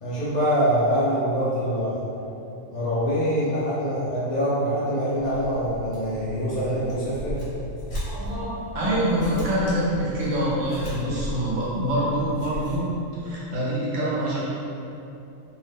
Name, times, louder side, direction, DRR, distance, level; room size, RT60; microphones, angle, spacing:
voice 1, 0.0-2.0 2.7-7.4, equal, 75° left, -9 dB, 0.3 m, -24 dB
sound 1, 5.2-12.8, equal, 50° left, 1.1 m, -37 dB
voice 2, 8.0-12.9 13.2-14.5, right 1 dB, 70° right, -7 dB, 1.1 m, -25 dB
2.7 x 2.1 x 3.4 m, 2.8 s
omnidirectional pair, 1.4 m